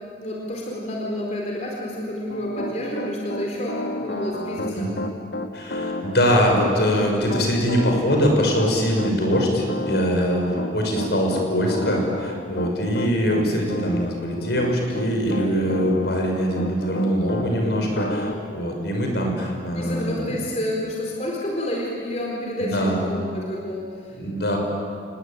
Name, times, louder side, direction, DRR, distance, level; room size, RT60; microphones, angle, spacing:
voice 1, 0.2-4.9 19.8-24.2, left 1 dB, 40° left, -2 dB, 4.2 m, -29 dB
Piano, 2.3-17.5 17.9-18.3, left 1 dB, 90° left, 1.8 m, -32 dB
voice 2, 5.5-20.3 22.6-23.0 24.1-24.6, equal, 70° left, 1 dB, 6.1 m, -22 dB
28.5 x 20.5 x 9.1 m, 2.3 s
head